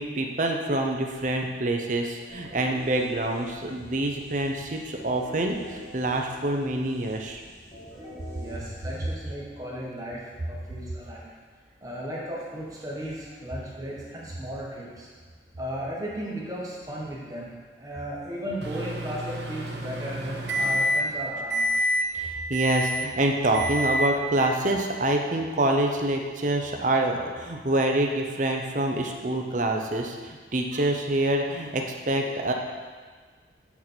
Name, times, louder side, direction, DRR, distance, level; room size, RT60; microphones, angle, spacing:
voice 1, 0.0-7.4 22.1-32.5, right 1 dB, 45° right, 2 dB, 0.7 m, -26 dB
sound 1, 2.3-9.9, equal, 15° left, 1.9 m, -46 dB
voice 2, 8.4-11.3 11.8-15.1 15.6-17.5 17.8-21.7, equal, 20° right, -5 dB, 1.5 m, -35 dB
Microwave oven, 18.6-21.2 21.5-22.1 22.5-23.1 23.5-24.2, equal, 70° right, 0.9 m, -27 dB
7.1 x 6.4 x 4.5 m, 1.5 s
head